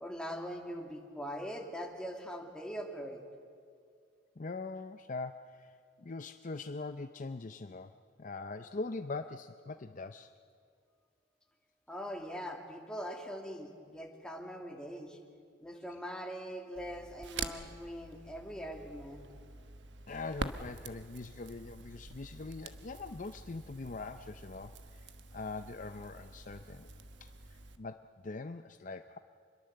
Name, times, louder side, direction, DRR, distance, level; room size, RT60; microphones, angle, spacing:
voice 1, 0.0-3.2 11.9-15.2 15.6-19.2, equal, 5° left, 1 dB, 2.5 m, -42 dB
voice 2, 4.4-10.3 15.9-16.0 20.1-26.9 27.2-29.2, left 3 dB, 40° left, 9 dB, 0.6 m, -42 dB
Crackle, 16.8-27.8, right 3 dB, 60° right, 1.3 m, -46 dB
26.0 x 21.5 x 7.9 m, 2.2 s
head